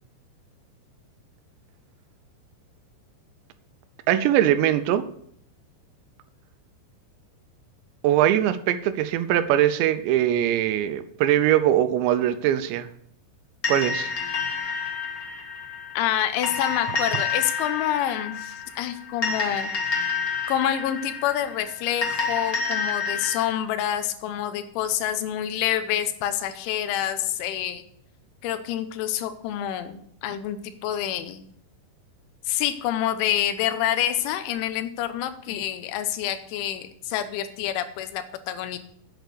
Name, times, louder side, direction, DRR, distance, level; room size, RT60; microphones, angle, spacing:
voice 1, 4.1-5.1 8.0-12.9 13.7-14.1, right 11 dB, 80° right, 11 dB, 2.7 m, -21 dB
sound 1, 13.6-23.4, left 5 dB, 65° left, 0.8 m, -29 dB
voice 2, 16.0-19.7 20.5-27.8 28.4-31.4 32.5-38.8, left 11 dB, 80° left, 10 dB, 3.3 m, -27 dB
8.1 x 8.0 x 6.7 m, 0.67 s
omnidirectional pair, 5.4 m